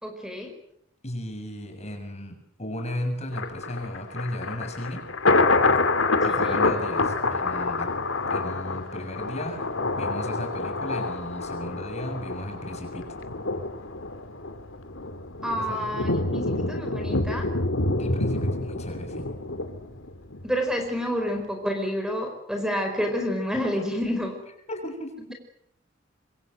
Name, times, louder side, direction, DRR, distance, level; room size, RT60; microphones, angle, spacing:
voice 1, 0.0-0.5 15.4-17.5 20.4-24.4, equal, 5° right, 5 dB, 5.0 m, -29 dB
voice 2, 1.0-5.1 6.2-7.9 8.3-13.2 15.6-15.9 18.0-19.3 24.7-25.3, left 1 dB, 35° left, 5 dB, 6.8 m, -35 dB
Thunder, 3.3-20.4 20.8-20.9, left 3 dB, 80° left, 2.5 m, -27 dB
26.5 x 25.5 x 7.8 m, 0.74 s
head